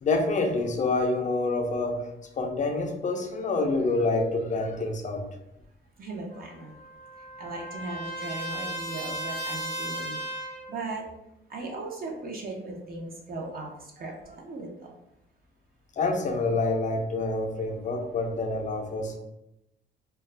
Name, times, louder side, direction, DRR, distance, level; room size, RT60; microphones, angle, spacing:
voice 1, 0.0-2.1 2.4-5.3 16.0-19.2, left 3 dB, 40° left, 3 dB, 0.5 m, -27 dB
voice 2, 6.0-6.7 7.4-10.2 10.7-11.0 11.5-13.7 14.0-14.9, right 2 dB, 45° right, 0 dB, 0.6 m, -37 dB
Trumpet, 6.3-10.7, right 1 dB, 70° right, 0.9 m, -36 dB
2.2 x 2.0 x 3.2 m, 0.86 s
cardioid pair, 90°, 20 cm